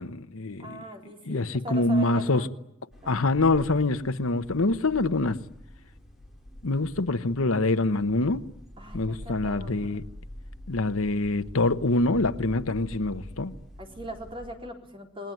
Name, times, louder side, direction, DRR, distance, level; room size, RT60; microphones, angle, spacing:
voice 1, 0.0-0.8 1.3-2.5 3.1-5.4 6.6-8.4 8.9-10.0 10.7-13.5, left 2 dB, 65° left, 1.1 m, -25 dB
voice 2, 0.6-2.5 3.0-3.2 8.8-10.0 13.8-15.3, right 2 dB, 25° right, 4.0 m, -40 dB
sound 1, 2.9-14.5, left 1 dB, ahead, 6.1 m, -46 dB
28.5 x 20.5 x 9.3 m
head